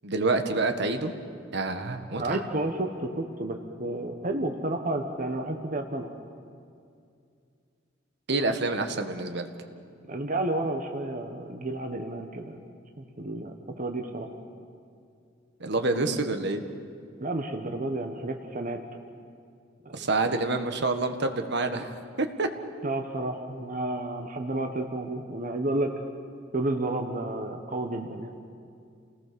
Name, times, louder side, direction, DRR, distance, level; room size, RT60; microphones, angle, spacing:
voice 1, 0.0-1.2 1.5-2.4 8.3-9.5 15.6-16.6 19.9-21.9 22.2-22.5, right 3 dB, 60° right, 7 dB, 1.6 m, -27 dB
voice 2, 2.2-6.1 10.1-12.6 13.0-14.3 17.2-18.8 19.8-20.1 22.8-25.9 26.5-28.3, right 2 dB, 45° right, 4 dB, 1.3 m, -31 dB
29.0 x 19.0 x 7.0 m, 2.4 s
head